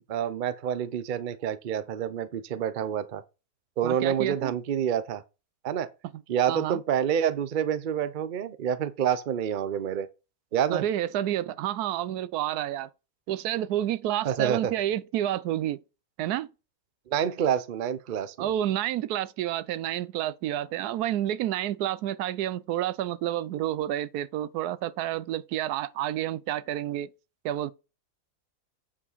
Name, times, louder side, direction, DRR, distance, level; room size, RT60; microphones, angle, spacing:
voice 1, 0.1-3.2 3.8-5.2 5.6-5.9 6.3-10.1 10.5-10.8 14.2-14.7 17.1-18.5, right 9 dB, 55° right, 0.5 m, -28 dB
voice 2, 3.8-4.5 6.1-6.2 6.5-6.8 10.7-12.9 13.3-15.8 16.2-16.5 18.4-27.1 27.4-27.7, right 12 dB, 80° right, 1.1 m, -29 dB
8.6 x 4.9 x 4.1 m
omnidirectional pair, 1.6 m